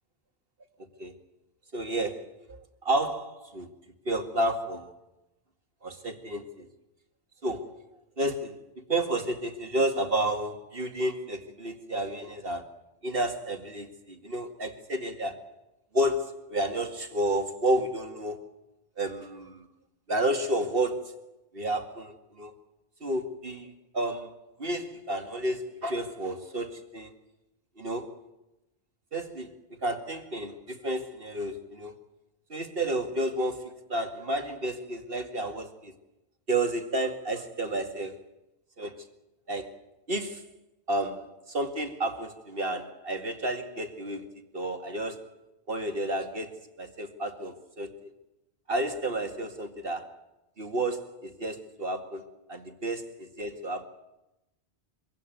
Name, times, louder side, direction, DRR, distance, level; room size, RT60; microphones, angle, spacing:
voice 1, 1.7-3.7 4.1-4.9 5.8-6.7 7.4-7.8 8.2-8.6 8.9-15.5 15.9-18.5 19.0-19.7 20.1-22.5 23.0-24.3 24.6-27.1 27.8-28.1 29.1-31.9 32.5-35.9 36.5-38.2 38.8-39.1 39.5-39.8 40.1-40.5 40.9-45.2 45.7-48.1 48.7-50.2 50.6-53.9, right 1 dB, 60° right, 6 dB, 2.4 m, -31 dB
24.5 x 17.0 x 9.3 m, 0.94 s
omnidirectional pair, 1.1 m